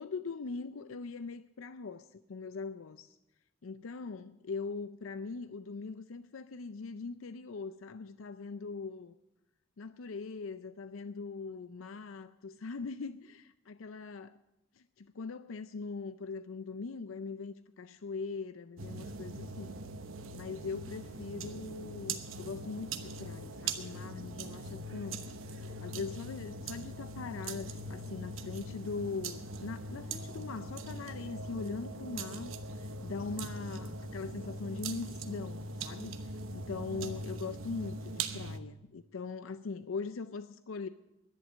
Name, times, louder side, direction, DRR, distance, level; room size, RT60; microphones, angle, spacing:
voice 1, 0.0-3.2 3.6-9.1 9.8-14.4 14.7-19.7 20.3-40.9, left 4 dB, 85° left, 0.5 m, -41 dB
sound 1, 18.8-38.6, right 2 dB, 85° right, 1.1 m, -41 dB
11.0 x 10.5 x 9.2 m
head